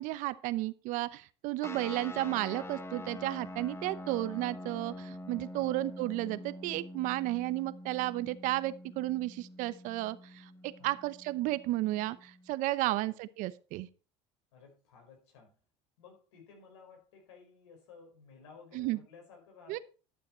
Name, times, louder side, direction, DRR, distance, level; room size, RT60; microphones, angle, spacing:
voice 1, 0.0-13.9 18.7-19.0 19.7-19.8, right 17 dB, 65° right, 15 dB, 0.8 m, -33 dB
sound 1, 1.6-12.5, left 1 dB, 15° left, 1.1 m, -45 dB
voice 2, 12.8-13.2 14.5-15.6 16.0-19.8, left 5 dB, 90° left, 3 dB, 4.7 m, -56 dB
12.0 x 7.1 x 4.4 m, 0.36 s
supercardioid pair, 100°, 14 cm